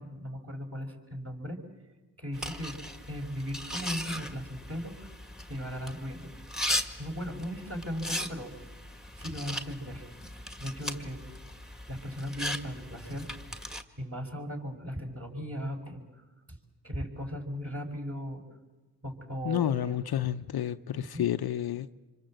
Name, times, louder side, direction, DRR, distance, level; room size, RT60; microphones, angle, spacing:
voice 1, 0.0-1.6 2.2-2.8 3.1-5.1 5.5-6.3 7.0-8.5 9.2-10.1 10.6-11.2 11.9-13.3 14.0-16.1 16.5-16.6 16.8-18.4 19.0-20.0 21.0-21.2, equal, 35° right, 1 dB, 5.7 m, -37 dB
sound 1, 2.3-13.8, left 1 dB, ahead, 1.8 m, -38 dB
voice 2, 19.4-21.9, left 10 dB, 60° left, 10 dB, 0.8 m, -30 dB
26.5 x 24.5 x 7.7 m, 1.2 s
supercardioid pair, 50°, 42 cm